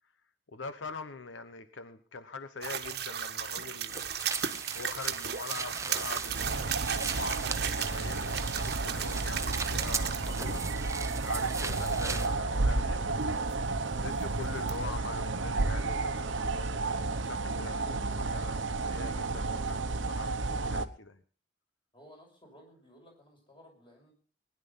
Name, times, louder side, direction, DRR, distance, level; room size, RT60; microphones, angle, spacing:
voice 1, 0.5-4.1 4.7-10.6 11.2-13.4 14.0-21.2, left 3 dB, 80° left, 11 dB, 1.0 m, -43 dB
sound 1, 2.6-15.0, right 8 dB, 55° right, 1.3 m, -37 dB
sound 2, 3.9-12.3, right 5 dB, 15° right, 0.7 m, -39 dB
sound 3, 6.2-20.9, right 3 dB, 80° right, 1.0 m, -32 dB
voice 2, 21.9-24.1, equal, 25° left, 2 dB, 6.0 m, -56 dB
20.0 x 10.5 x 5.5 m, 0.43 s
head